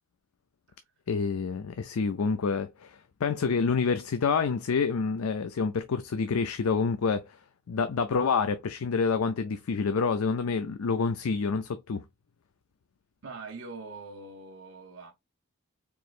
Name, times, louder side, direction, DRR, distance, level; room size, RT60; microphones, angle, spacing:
voice 1, 1.1-7.4 7.7-12.0, left 5 dB, 85° left, 0.5 m, -28 dB
voice 2, 13.2-15.1, right 3 dB, 65° right, 0.8 m, -43 dB
4.5 x 3.1 x 2.4 m
head